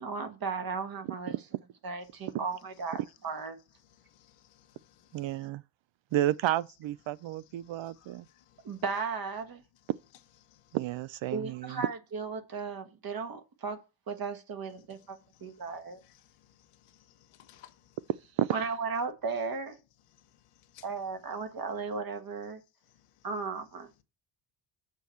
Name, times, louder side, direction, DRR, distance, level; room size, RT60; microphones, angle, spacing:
voice 1, 0.0-1.3 1.8-3.6 8.6-9.6 11.3-13.8 14.1-16.0 18.5-19.8 20.8-22.6 23.2-23.9, right 4 dB, 45° right, 1.5 m, -35 dB
voice 2, 1.0-1.4 5.1-5.6 6.1-8.3 10.7-11.9 18.4-18.6, right 14 dB, 65° right, 0.6 m, -31 dB
voice 3, 3.8-5.5 7.3-8.8 10.4-10.8 14.9-15.1 15.3-18.0 20.1-20.9 22.8-23.3, left 11 dB, 90° left, 1.2 m, -62 dB
6.9 x 4.5 x 6.9 m
cardioid pair, 125°, 50 cm